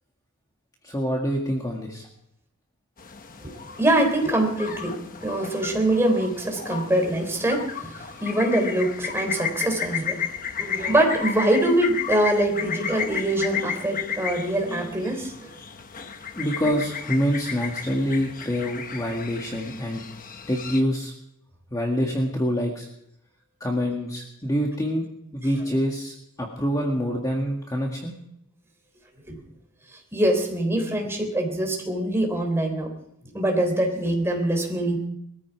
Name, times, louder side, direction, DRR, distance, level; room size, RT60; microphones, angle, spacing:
voice 1, 0.8-2.1 16.4-20.0 20.5-21.1 21.7-22.9 23.6-25.1 25.3-28.1, equal, 15° left, 0 dB, 1.8 m, -26 dB
sound 1, 3.0-20.8, left 7 dB, 40° left, 1.1 m, -34 dB
voice 2, 3.8-10.3 10.6-15.5 29.3-29.4 30.1-32.9 33.3-35.0, right 1 dB, 10° right, 2 dB, 3.6 m, -24 dB
21.5 x 14.5 x 4.7 m, 0.76 s
head